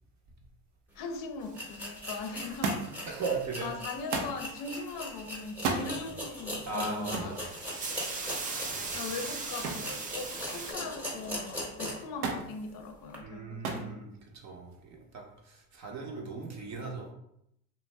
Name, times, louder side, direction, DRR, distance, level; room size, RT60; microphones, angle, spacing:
voice 1, 1.0-3.0 3.6-7.4 8.9-14.1, left 3 dB, 50° left, 5 dB, 0.6 m, -40 dB
sound 1, 1.0-1.1 1.5-12.1 12.5-12.6 13.1-13.2, equal, 5° right, 0.8 m, -40 dB
sound 2, 1.5-2.5 3.8-4.3 6.5-6.7 7.0-10.7, right 4 dB, 20° right, 0.3 m, -38 dB
Thump thud, 2.6-3.1 4.1-4.4 5.5-5.9 7.1-7.4 9.6-9.9 10.3-10.9 12.2-12.5 13.6-13.9 14.8-15.3 16.3-16.4, right 3 dB, 85° right, 0.6 m, -33 dB
voice 2, 3.0-3.7 6.7-7.5 8.6-9.0 13.2-17.1, right 3 dB, 40° right, 0 dB, 0.7 m, -38 dB
2.5 x 2.1 x 3.2 m, 0.76 s
supercardioid pair, 90°, 43 cm